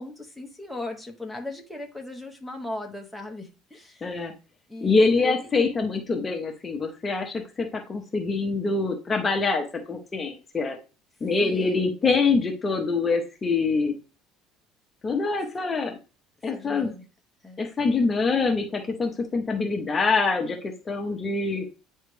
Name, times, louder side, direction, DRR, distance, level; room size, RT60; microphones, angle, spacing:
voice 1, 0.0-4.1 4.7-5.5 11.4-11.8 16.5-17.0 17.4-17.6, left 2 dB, ahead, 1.1 m, -37 dB
voice 2, 4.0-4.3 4.8-10.8 11.2-13.9 15.0-15.9 16.4-16.9 17.6-21.6, left 4 dB, 25° left, 0.9 m, -25 dB
9.2 x 3.3 x 3.3 m
supercardioid pair, 115°, 0 cm